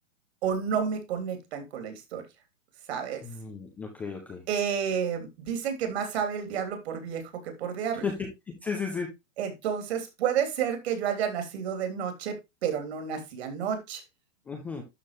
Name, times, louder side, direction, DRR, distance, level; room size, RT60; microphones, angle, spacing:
voice 1, 0.4-2.2 2.9-3.2 4.5-8.1 9.4-14.0, right 8 dB, 55° right, 3.0 m, -30 dB
voice 2, 3.2-4.4 8.0-8.3 8.6-9.1 14.5-14.8, left 5 dB, 5° left, 0.4 m, -33 dB
12.0 x 4.3 x 3.1 m
hypercardioid pair, 150°, 38 cm